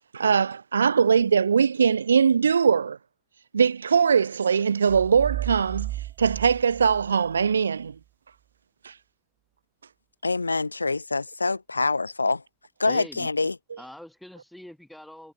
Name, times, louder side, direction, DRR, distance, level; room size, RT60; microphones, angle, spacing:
voice 1, 0.0-3.0 3.5-7.9 8.8-9.0, right 6 dB, 80° right, 1.0 m, -21 dB
sound 1, 4.9-7.6, right 15 dB, 40° right, 1.3 m, -34 dB
voice 2, 10.2-12.4 12.8-13.5, left 3 dB, 90° left, 0.7 m, -25 dB
voice 3, 12.8-13.3 13.8-15.3, left 1 dB, 5° left, 7.2 m, -43 dB
figure-of-eight pair, 90°, 0 cm